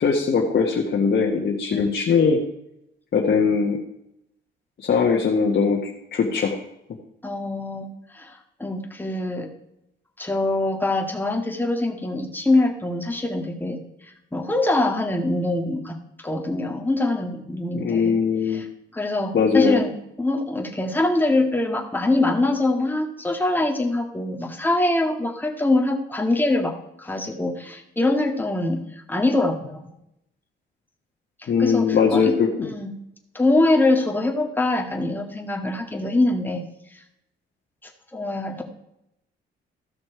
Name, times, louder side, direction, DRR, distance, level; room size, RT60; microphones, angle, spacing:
voice 1, 0.0-2.4 3.1-3.8 4.8-6.6 17.7-18.6 19.3-19.8 31.5-32.7, left 5 dB, 55° left, -1 dB, 1.5 m, -20 dB
voice 2, 7.2-7.9 8.1-9.5 10.2-13.8 14.3-18.2 18.5-18.7 18.9-19.9 20.2-26.7 27.0-29.9 31.4-32.4 32.7-32.9 33.3-36.6 38.1-38.6, left 2 dB, 10° left, 3 dB, 1.8 m, -23 dB
14.0 x 6.2 x 4.9 m, 0.81 s
cardioid pair, 90°, 20 cm